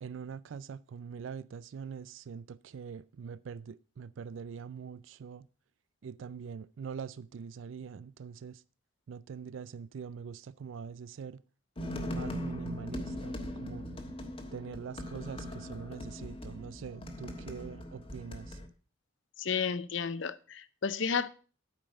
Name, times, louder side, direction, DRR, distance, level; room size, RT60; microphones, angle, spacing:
voice 1, 0.0-5.5 6.0-8.6 9.1-11.4 12.1-13.9 14.5-18.6, right 6 dB, 75° right, 0.4 m, -43 dB
sound 1, 11.8-18.7, equal, 30° left, 1.3 m, -40 dB
voice 2, 19.4-21.3, left 6 dB, 70° left, 0.7 m, -32 dB
8.9 x 5.2 x 7.8 m
head